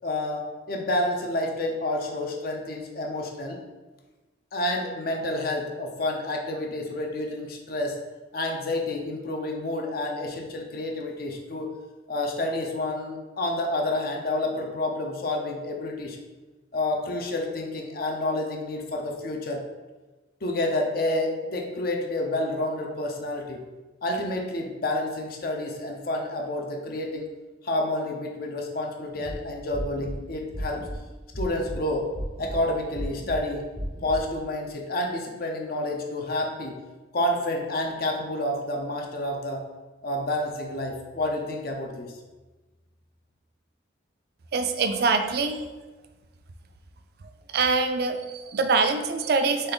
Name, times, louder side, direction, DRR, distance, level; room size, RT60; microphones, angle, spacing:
voice 1, 0.0-3.6 4.5-8.0 8.3-11.7 12.1-16.2 16.7-19.6 20.4-23.6 24.0-27.3 27.6-30.9 31.4-32.0 32.4-33.7 34.0-36.8 37.1-39.6 40.0-42.1, left 1 dB, 55° left, 1 dB, 0.6 m, -29 dB
sound 1, 29.1-29.3 29.7-30.2 30.5-31.0 31.3-31.8 32.1-32.6 32.9-33.4 33.8-34.2, equal, 35° left, 1.0 m, -34 dB
voice 2, 44.5-45.7 47.5-49.7, right 4 dB, 60° right, 8 dB, 0.4 m, -24 dB
4.1 x 3.3 x 3.8 m, 1.2 s
head